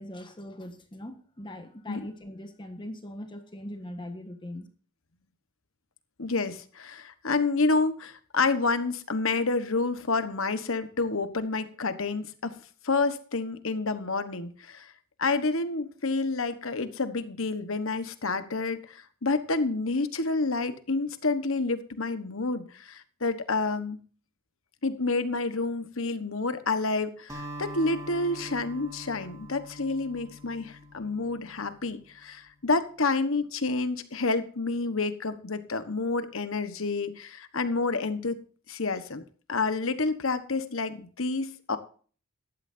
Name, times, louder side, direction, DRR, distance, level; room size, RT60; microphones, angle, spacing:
voice 1, 0.0-4.7, left 1 dB, 20° left, 6 dB, 1.4 m, -41 dB
voice 2, 6.2-12.5 12.8-14.9 15.2-24.0 24.8-38.4 38.7-39.2 39.5-41.8, left 3 dB, 65° left, 10 dB, 1.3 m, -29 dB
Acoustic guitar, 27.3-31.8, right 1 dB, 15° right, 3.2 m, -43 dB
15.5 x 12.0 x 2.7 m, 0.41 s
head